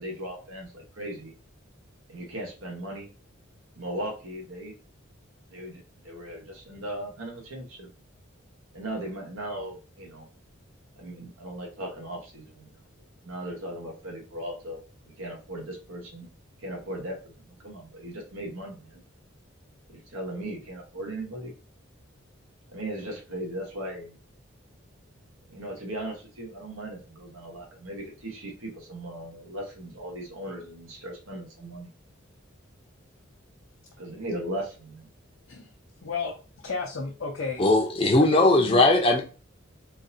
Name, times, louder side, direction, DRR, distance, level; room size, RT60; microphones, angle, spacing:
voice 1, 0.0-1.3 2.1-3.1 3.8-4.7 5.5-7.9 8.7-10.3 11.0-12.7 13.2-14.8 15.2-16.3 16.6-19.0 19.9-21.5 22.7-24.2 25.5-31.9 34.0-35.1, right 1 dB, 80° right, 1.1 m, -37 dB
voice 2, 36.0-37.7 38.2-38.9, left 4 dB, 70° left, 0.6 m, -33 dB
voice 3, 37.6-39.2, left 2 dB, 25° left, 0.6 m, -19 dB
3.8 x 2.6 x 2.7 m
head